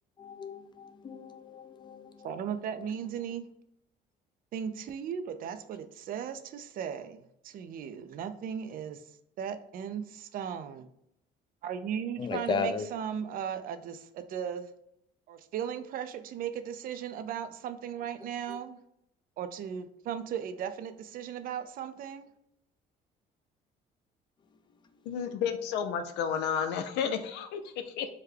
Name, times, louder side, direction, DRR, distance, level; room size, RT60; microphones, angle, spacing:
voice 1, 0.2-2.4 12.2-12.9 18.5-18.6, left 4 dB, 25° left, 8 dB, 0.4 m, -35 dB
voice 2, 2.2-3.5 4.5-9.0 9.4-10.9 11.6-14.7 15.3-18.8 19.4-22.3, right 8 dB, 60° right, 10 dB, 0.4 m, -37 dB
voice 3, 25.1-28.1, left 7 dB, 90° left, 9 dB, 0.5 m, -32 dB
3.5 x 2.2 x 3.3 m, 0.77 s
cardioid pair, 110°, 17 cm